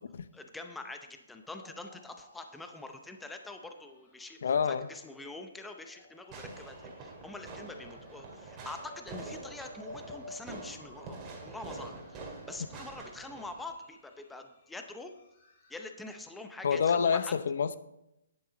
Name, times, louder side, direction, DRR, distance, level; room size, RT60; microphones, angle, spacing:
voice 1, 0.3-4.4 4.6-15.1 15.7-17.3, left 2 dB, 5° left, 0.6 m, -45 dB
sound 1, 1.4-16.5, left 2 dB, 35° left, 3.2 m, -55 dB
voice 2, 4.4-4.9 16.6-17.8, left 6 dB, 65° left, 0.7 m, -27 dB
Fireworks, 6.3-13.7, right 3 dB, 20° right, 2.1 m, -46 dB
9.9 x 8.4 x 3.9 m
hypercardioid pair, 155°, 0 cm